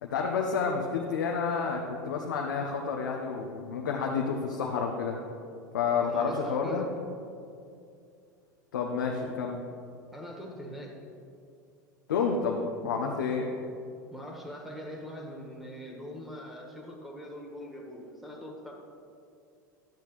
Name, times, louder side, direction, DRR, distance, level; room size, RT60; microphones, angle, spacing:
voice 1, 0.0-5.2 5.7-6.9 8.7-9.6 12.1-13.5, left 5 dB, 75° left, 0 dB, 0.7 m, -30 dB
voice 2, 6.0-6.9 10.1-11.0 14.1-18.7, equal, ahead, -1 dB, 1.5 m, -42 dB
12.0 x 8.2 x 3.1 m, 2.5 s
hypercardioid pair, 80°, 10 cm